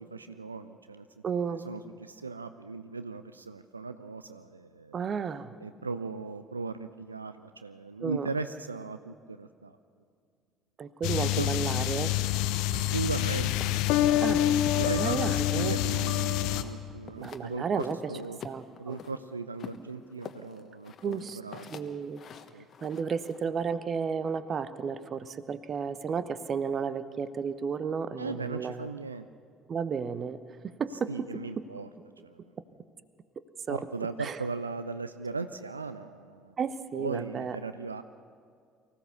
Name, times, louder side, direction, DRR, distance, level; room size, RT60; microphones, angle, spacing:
voice 1, 0.1-1.1 1.5-5.0 5.6-9.8 11.2-11.5 12.7-18.4 18.8-21.7 22.5-22.7 28.2-29.3 31.1-31.9 32.2-32.4 33.7-36.5 36.9-38.0, right 4 dB, 85° right, 11 dB, 0.4 m, -37 dB
voice 2, 1.2-1.6 4.9-5.5 8.0-8.3 10.8-12.1 14.2-14.4 14.9-15.8 17.2-18.0 18.4-19.0 21.0-21.4 21.7-22.2 22.8-28.9 29.7-30.4 30.8-31.1 33.7-33.8 34.2-34.4 36.6-37.6, right 6 dB, 40° right, 14 dB, 0.9 m, -32 dB
sound 1, 11.0-16.6, left 13 dB, 60° left, 0.8 m, -27 dB
sound 2, 13.6-16.3 16.5-17.5 17.8-19.1 19.6-23.4, left 7 dB, 40° left, 1.2 m, -46 dB
24.0 x 15.5 x 6.9 m, 2.2 s
figure-of-eight pair, 55°, 0 cm